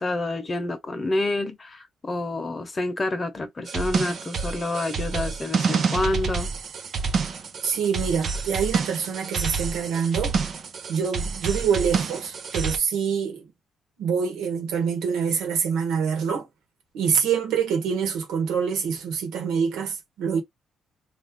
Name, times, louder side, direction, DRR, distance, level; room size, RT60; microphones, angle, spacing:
voice 1, 0.0-6.5, left 2 dB, 30° left, 1.0 m, -28 dB
sound 1, 3.7-12.8, right 5 dB, 55° right, 0.8 m, -28 dB
voice 2, 7.6-10.4 10.9-13.5 14.0-16.5 16.9-20.4, right 6 dB, 90° right, 1.4 m, -25 dB
3.1 x 2.7 x 3.7 m
cardioid pair, 90°, 0 cm